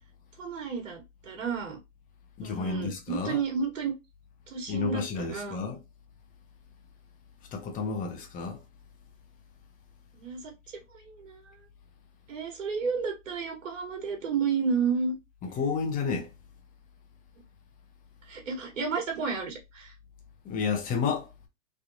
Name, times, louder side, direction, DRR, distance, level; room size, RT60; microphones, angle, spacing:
voice 1, 0.4-1.8 2.4-3.9 4.5-5.6 10.1-10.5 10.9-11.6 12.3-15.1 18.3-19.9, right 5 dB, 70° right, 1.6 m, -31 dB
voice 2, 2.4-3.4 4.7-5.8 7.5-8.6 15.4-16.3 20.4-21.3, left 5 dB, 20° left, 0.9 m, -31 dB
3.4 x 2.8 x 2.6 m
hypercardioid pair, 120°, 39 cm